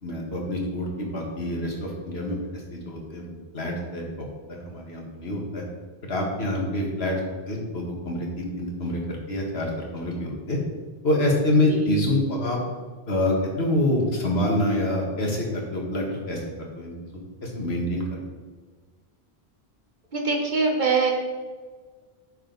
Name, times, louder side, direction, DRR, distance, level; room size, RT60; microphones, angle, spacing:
voice 1, 0.0-4.0 4.5-5.6 6.1-7.1 7.5-9.0 9.3-10.6 11.0-12.6 13.1-15.5 15.7-16.4 16.8-16.9 17.4-18.2, left 1 dB, 75° left, -1 dB, 2.1 m, -26 dB
voice 2, 20.1-21.1, right 4 dB, 50° right, 1 dB, 1.6 m, -23 dB
9.8 x 6.9 x 4.0 m, 1.4 s
omnidirectional pair, 1.1 m